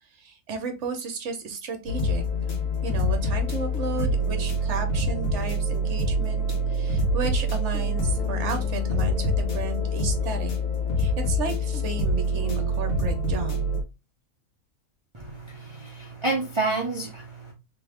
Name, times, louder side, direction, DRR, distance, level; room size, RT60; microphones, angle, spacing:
voice 1, 0.1-2.2 2.8-10.5 11.0-13.8, right 5 dB, 60° right, 1.2 m, -33 dB
sound 1, 1.9-13.8, left 1 dB, 65° left, 1.6 m, -26 dB
voice 2, 15.1-17.5, right 3 dB, 25° right, 0.7 m, -29 dB
3.5 x 3.0 x 3.5 m
omnidirectional pair, 1.5 m